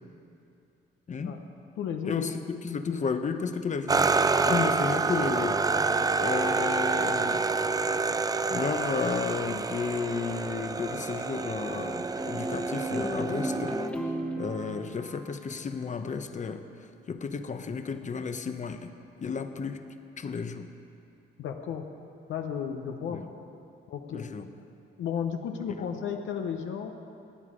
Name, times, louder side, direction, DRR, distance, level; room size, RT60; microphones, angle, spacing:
voice 1, 1.1-1.4 2.1-4.1 4.5-5.6 6.2-7.4 8.5-13.8 14.4-18.9 19.2-19.8 20.2-20.7 23.0-23.3 24.1-24.5, left 5 dB, 40° left, 8 dB, 0.9 m, -32 dB
voice 2, 1.8-2.2 21.4-21.8 22.3-23.2 23.9-24.3 25.0-26.9, left 7 dB, 75° left, 4 dB, 0.9 m, -33 dB
sound 1, 3.9-13.9, right 4 dB, 20° right, 0.4 m, -28 dB
sound 2, 10.7-16.1, right 1 dB, 5° left, 1.3 m, -36 dB
18.5 x 9.5 x 5.1 m, 2.6 s
cardioid pair, 90°, 20 cm